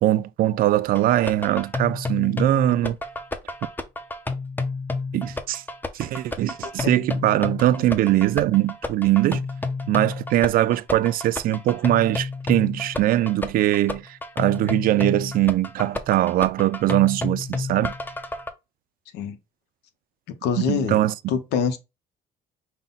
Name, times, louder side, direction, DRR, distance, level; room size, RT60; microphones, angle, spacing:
voice 1, 0.0-3.0 5.1-5.6 5.9-9.4 9.9-17.9 20.6-21.1, right 14 dB, 60° right, 0.4 m, -21 dB
sound 1, 1.0-18.5, left 3 dB, 10° left, 0.6 m, -30 dB
voice 2, 20.4-21.0 21.3-21.8, left 6 dB, 85° left, 0.8 m, -24 dB
5.4 x 2.2 x 3.9 m
cardioid pair, 110°, 17 cm